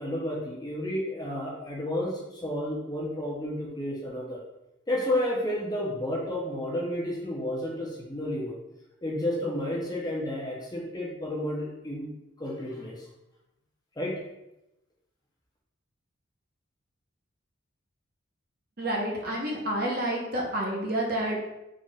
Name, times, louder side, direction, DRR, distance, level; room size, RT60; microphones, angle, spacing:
voice 1, 0.0-4.4 4.9-8.6 9.0-12.1 12.4-13.0 14.0-14.2, left 1 dB, 20° left, -3 dB, 0.6 m, -31 dB
voice 2, 18.8-21.4, right 1 dB, 50° right, -2 dB, 0.8 m, -29 dB
3.7 x 2.4 x 4.0 m, 0.92 s
head